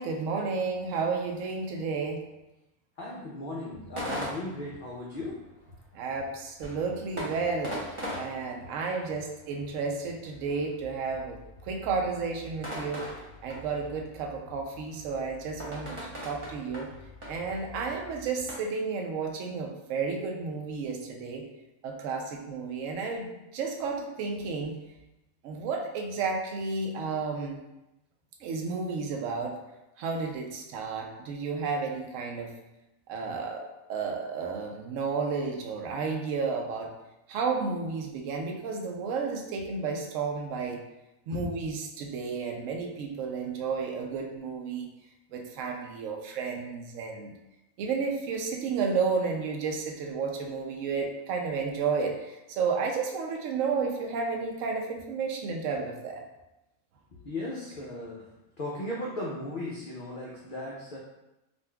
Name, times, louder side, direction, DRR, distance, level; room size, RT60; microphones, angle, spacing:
voice 1, 0.0-2.2 5.9-13.1 13.4-16.9 17.3-21.4 21.8-24.8 25.4-27.6 28.4-29.6 30.0-32.5 33.1-36.9 37.3-40.8 41.3-44.9 45.3-47.3 47.8-56.2, right 4 dB, 70° right, 2 dB, 0.9 m, -32 dB
voice 2, 3.0-5.4 41.3-41.5 57.2-58.3 58.6-61.0, left 1 dB, 75° left, -4 dB, 0.4 m, -36 dB
sound 1, 3.7-18.5, equal, 30° right, 0.7 m, -42 dB
3.8 x 2.5 x 2.2 m, 0.94 s
omnidirectional pair, 1.5 m